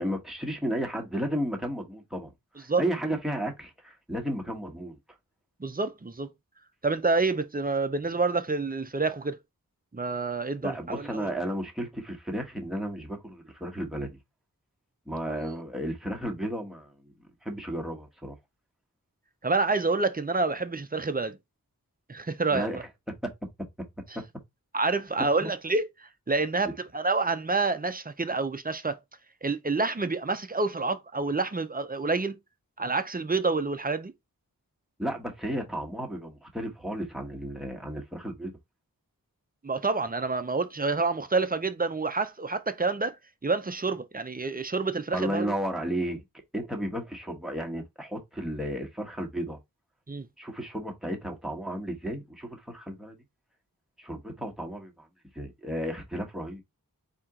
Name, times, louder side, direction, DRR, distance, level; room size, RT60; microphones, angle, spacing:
voice 1, 0.0-2.3 2.6-5.0 10.6-14.2 15.1-17.1 17.4-18.3 22.5-23.3 24.1-24.2 25.4-25.5 35.0-38.5 45.1-46.2 46.5-49.6 50.4-53.1 54.0-55.1 55.3-56.6, equal, ahead, 1.2 m, -33 dB
voice 2, 5.6-6.3 6.8-9.4 9.9-11.3 19.4-21.4 22.1-22.8 24.7-29.0 29.4-32.4 32.8-34.1 39.6-43.2 43.4-45.5 50.1-50.3, right 3 dB, 25° right, 0.6 m, -28 dB
4.3 x 2.9 x 3.7 m
wide cardioid pair, 45°, 36 cm